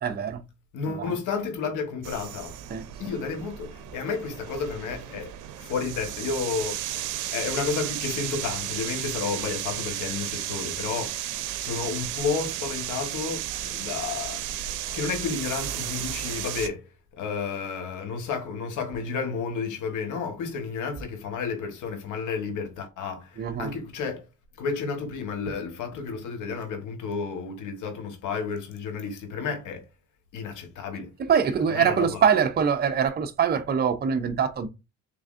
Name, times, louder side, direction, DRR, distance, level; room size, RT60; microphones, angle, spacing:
voice 1, 0.0-0.4 1.0-1.1 2.7-2.8 23.4-23.7 31.3-34.7, right 7 dB, 35° right, 0.6 m, -23 dB
voice 2, 0.7-2.6 3.0-14.6 14.9-16.8 17.1-24.3 24.6-29.8 30.3-31.1 31.7-32.2, left 5 dB, 85° left, 1.2 m, -32 dB
sound 1, 2.0-16.7, right 12 dB, 90° right, 0.5 m, -34 dB
3.8 x 3.4 x 2.4 m
cardioid pair, 90°, 30 cm